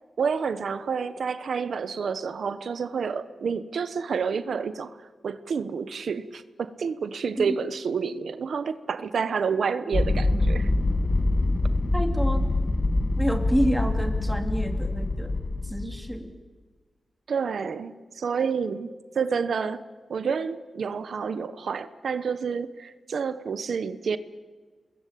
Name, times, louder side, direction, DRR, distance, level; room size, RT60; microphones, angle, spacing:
voice 1, 0.2-4.9 5.2-10.7 17.3-19.8 20.1-24.2, right 6 dB, 85° right, 1.1 m, -29 dB
sound 1, 9.9-16.2, left 2 dB, 35° left, 1.5 m, -25 dB
voice 2, 11.9-12.4 13.2-15.3 15.6-16.3, equal, ahead, 3.5 m, -28 dB
29.0 x 21.5 x 8.6 m
wide cardioid pair, 85°, 0 cm